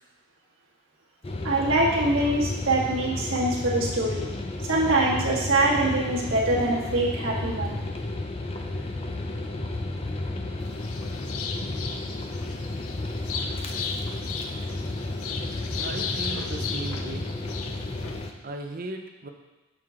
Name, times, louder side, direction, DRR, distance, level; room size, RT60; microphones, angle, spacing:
sound 1, 1.2-18.3, left 2 dB, 25° left, 0.4 m, -32 dB
voice 1, 1.4-4.3 4.6-7.8, right 2 dB, 60° right, -6 dB, 1.6 m, -24 dB
sound 2, 10.6-18.3, left 5 dB, 75° left, 0.5 m, -36 dB
voice 2, 15.8-17.3 18.4-19.3, right 2 dB, 40° right, 4 dB, 0.6 m, -36 dB
7.7 x 4.7 x 3.7 m, 1.1 s
head